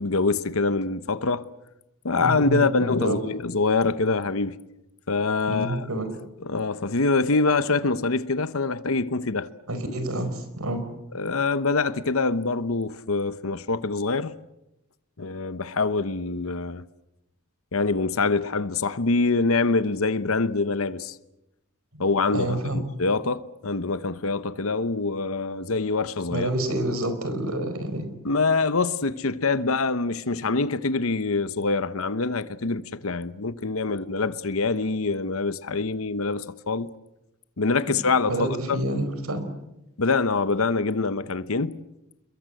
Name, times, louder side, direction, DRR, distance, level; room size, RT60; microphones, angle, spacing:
voice 1, 0.0-1.4 2.0-4.5 5.1-5.9 6.4-9.5 11.1-14.3 15.2-16.9 17.7-21.2 22.0-26.5 28.2-36.9 37.6-38.8 40.0-41.8, left 3 dB, 70° left, 1.0 m, -25 dB
voice 2, 2.2-3.2 5.5-6.1 9.7-10.8 22.3-22.8 26.3-28.1 38.3-39.4, right 1 dB, 80° right, 5.1 m, -28 dB
29.0 x 22.5 x 7.9 m
head